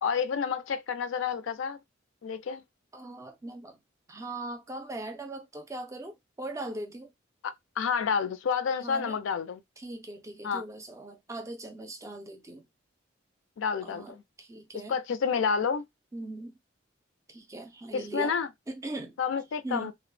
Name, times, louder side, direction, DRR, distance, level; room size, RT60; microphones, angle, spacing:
voice 1, 0.0-1.8 2.2-2.6 7.4-9.6 10.4-10.6 13.6-14.2 14.9-15.8 17.9-18.5 19.2-19.9, left 6 dB, 80° left, 0.4 m, -29 dB
voice 2, 2.9-3.8 4.1-7.1 8.8-9.2 9.8-12.7 13.8-15.0 16.1-16.6 17.3-18.4 18.7-19.2 19.6-19.9, right 2 dB, 15° right, 0.4 m, -40 dB
2.1 x 2.0 x 3.1 m
head